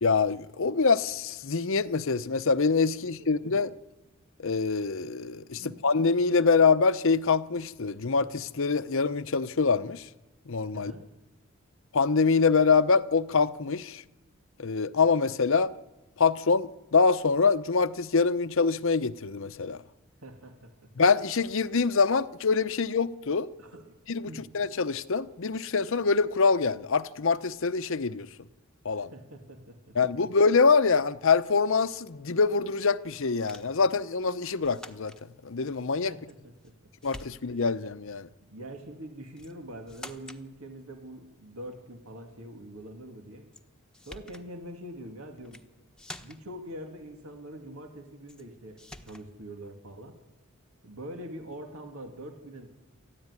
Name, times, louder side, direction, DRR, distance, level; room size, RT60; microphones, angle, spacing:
voice 1, 0.0-3.7 4.4-10.1 10.5-10.9 11.9-14.0 14.6-15.7 16.2-19.8 21.0-23.5 24.1-28.3 28.8-29.1 30.0-35.1 35.4-36.1 37.0-38.3, left 4 dB, 65° left, 0.8 m, -25 dB
voice 2, 3.0-3.6 5.6-5.7 10.7-11.1 20.2-20.9 23.6-24.5 29.0-30.0 36.1-36.7 38.4-43.5 44.1-45.6 46.2-50.2 50.8-52.7, right 1 dB, 80° right, 2.4 m, -44 dB
sound 1, 33.5-33.8 34.6-35.2 36.3-36.7 37.0-37.7 39.4-39.6 39.9-40.5 43.5-43.6 43.9-44.5 45.4-45.7 46.0-46.6 48.3-48.5 48.8-49.3, left 1 dB, 5° left, 1.2 m, -47 dB
28.0 x 14.0 x 9.7 m
head